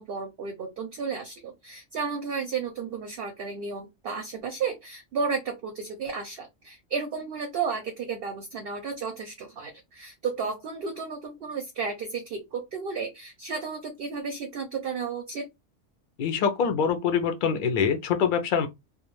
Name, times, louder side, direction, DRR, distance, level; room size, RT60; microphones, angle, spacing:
voice 1, 0.0-15.4, right 5 dB, 60° right, 0.6 m, -33 dB
voice 2, 16.2-18.7, left 6 dB, 60° left, 0.5 m, -24 dB
2.3 x 2.2 x 3.0 m
omnidirectional pair, 1.3 m